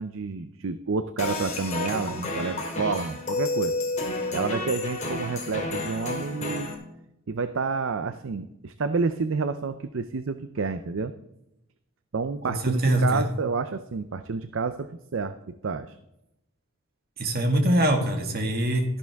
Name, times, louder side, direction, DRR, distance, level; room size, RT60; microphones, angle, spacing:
voice 1, 0.0-3.8 4.3-6.7 7.3-11.1 12.1-16.0, right 4 dB, 60° right, 11 dB, 0.5 m, -29 dB
sound 1, 1.2-6.7, left 2 dB, 30° left, 2.4 m, -30 dB
voice 2, 12.5-13.2 17.2-19.0, right 1 dB, 45° right, 3 dB, 1.9 m, -23 dB
13.5 x 11.0 x 3.5 m, 0.84 s
head